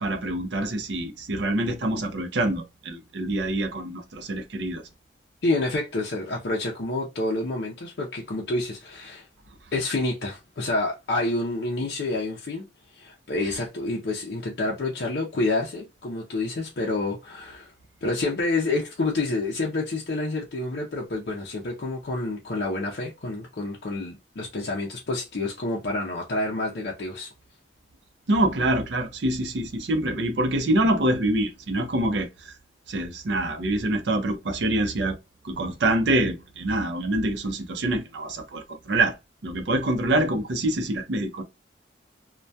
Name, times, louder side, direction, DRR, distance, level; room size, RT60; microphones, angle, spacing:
voice 1, 0.0-4.8 28.3-32.5 32.9-35.2 35.4-39.2 39.4-41.4, right 1 dB, 65° right, 0.5 m, -25 dB
voice 2, 5.4-9.2 9.7-12.6 12.9-17.7 18.0-27.3, left 2 dB, 55° left, 0.5 m, -28 dB
2.2 x 2.2 x 2.6 m
head